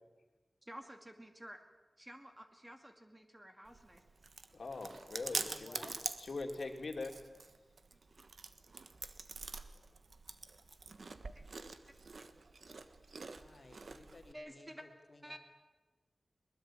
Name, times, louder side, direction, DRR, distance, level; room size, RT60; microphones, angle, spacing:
voice 1, 0.6-1.6 2.0-4.0 11.3-11.4 12.2-12.3 14.3-14.8 15.2-15.4, equal, 15° right, 5 dB, 2.2 m, -51 dB
Chewing mastication, 3.7-14.3, right 3 dB, 70° right, 1.4 m, -46 dB
voice 2, 4.5-5.8 6.2-7.2, left 3 dB, 70° left, 4 dB, 2.9 m, -42 dB
voice 3, 5.3-6.0 13.3-15.4, left 2 dB, 50° left, 5 dB, 2.7 m, -58 dB
21.5 x 20.5 x 8.9 m, 1.2 s
wide cardioid pair, 70°, 0 cm